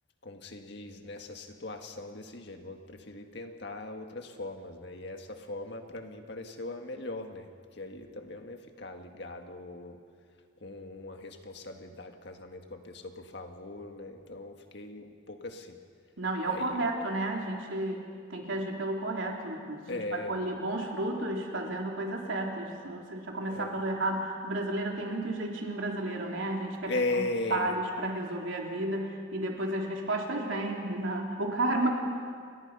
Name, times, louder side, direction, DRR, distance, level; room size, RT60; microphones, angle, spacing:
voice 1, 0.2-10.0 10.6-15.8 16.5-16.9 19.9-20.4 23.5-23.8 26.9-27.7, left 2 dB, 60° left, 4 dB, 1.9 m, -39 dB
voice 2, 16.2-18.0 18.3-27.2 27.5-31.9, right 2 dB, 75° right, 0 dB, 3.5 m, -32 dB
28.5 x 23.0 x 5.6 m, 2.1 s
head